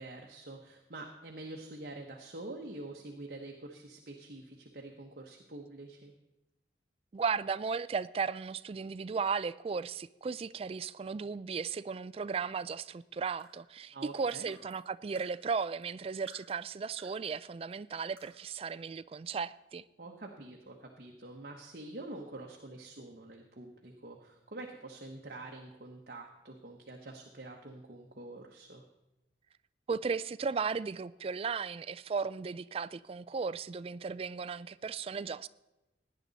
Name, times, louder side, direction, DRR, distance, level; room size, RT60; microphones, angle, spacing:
voice 1, 0.0-6.1 13.9-14.5 20.0-28.8, right 2 dB, 55° right, 1.1 m, -46 dB
voice 2, 7.1-19.8 29.9-35.5, right 5 dB, 30° right, 0.3 m, -35 dB
sound 1, 13.4-16.0 16.3-17.4 17.7-17.8 18.2-18.6, right 1 dB, 15° right, 5.1 m, -60 dB
17.5 x 9.9 x 4.0 m
head